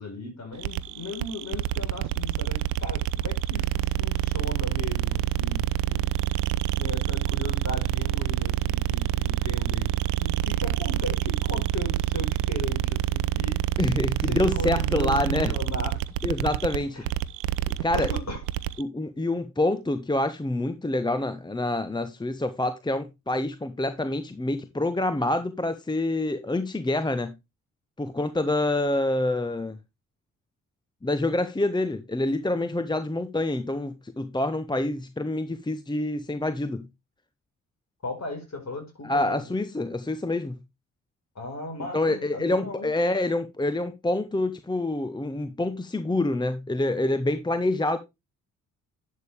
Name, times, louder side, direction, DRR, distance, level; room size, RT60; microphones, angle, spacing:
voice 1, 0.0-6.0 6.8-13.6 14.3-16.0 16.9-17.0 17.9-18.4 38.0-39.6 41.3-42.9, left 2 dB, 40° left, 4.7 m, -36 dB
sound 1, 0.6-18.8, right 15 dB, 75° right, 0.6 m, -27 dB
voice 2, 13.8-15.5 16.2-17.0 17.8-18.1 18.8-27.4 28.0-29.8 31.0-36.9 39.0-40.6 41.9-48.0, left 2 dB, 10° left, 0.9 m, -27 dB
11.0 x 6.6 x 3.3 m
hypercardioid pair, 45°, 40 cm